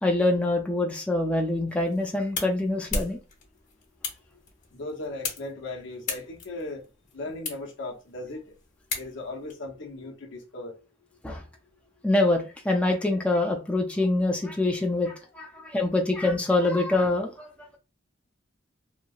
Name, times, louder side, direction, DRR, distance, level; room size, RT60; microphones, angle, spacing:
voice 1, 0.0-3.2 11.2-11.4 12.0-17.5, left 2 dB, 5° left, 0.4 m, -25 dB
sound 1, 1.7-9.5, left 4 dB, 40° left, 1.0 m, -38 dB
voice 2, 4.7-6.8 7.1-8.4 9.0-10.7, left 2 dB, 70° left, 0.8 m, -37 dB
2.9 x 2.7 x 2.3 m
head